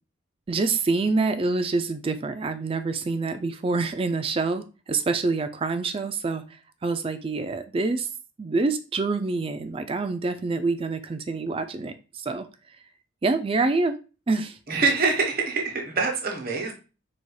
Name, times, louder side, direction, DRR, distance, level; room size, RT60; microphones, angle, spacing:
voice 1, 0.5-6.4 6.8-8.1 8.4-12.5 13.2-14.0 14.3-14.6, right 3 dB, 25° right, 10 dB, 0.3 m, -26 dB
voice 2, 14.7-16.7, right 4 dB, 45° right, 2 dB, 1.1 m, -25 dB
4.7 x 4.1 x 2.2 m, 0.33 s
head